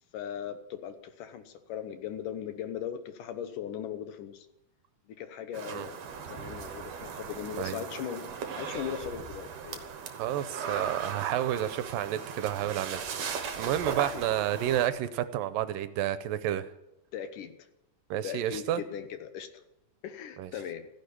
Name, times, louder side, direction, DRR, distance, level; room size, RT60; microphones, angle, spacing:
voice 1, 0.1-4.5 5.1-6.0 6.3-8.3 8.6-9.8 14.1-14.3 17.1-17.7 18.2-19.6 20.0-20.9, left 9 dB, 70° left, 9 dB, 2.4 m, -38 dB
sound 1, 5.5-14.9, right 6 dB, 60° right, 2.1 m, -38 dB
voice 2, 10.2-16.7 18.1-18.8 20.4-20.5, right 12 dB, 80° right, 12 dB, 2.4 m, -30 dB
15.0 x 10.5 x 8.5 m, 0.88 s
omnidirectional pair, 4.2 m